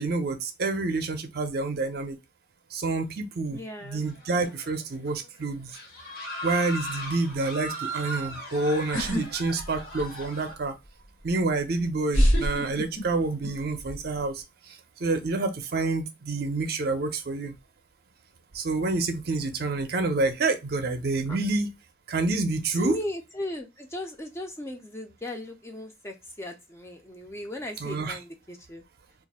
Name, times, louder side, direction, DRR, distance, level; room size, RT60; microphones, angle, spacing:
voice 1, 0.0-2.2 2.7-5.8 6.4-10.7 11.2-17.5 18.5-21.7 22.1-23.0 27.8-28.2, right 3 dB, 50° right, 0.5 m, -28 dB
voice 2, 3.5-4.0 22.7-28.8, left 1 dB, 15° left, 0.4 m, -37 dB
sound 1, 3.9-4.8 5.1-5.3 5.7-10.5, right 1 dB, 50° left, 0.9 m, -38 dB
sound 2, 8.9-9.2 9.6-10.2 11.3-11.4 12.1-13.5 13.8-14.2, equal, 80° left, 1.3 m, -24 dB
2.6 x 2.4 x 4.1 m
head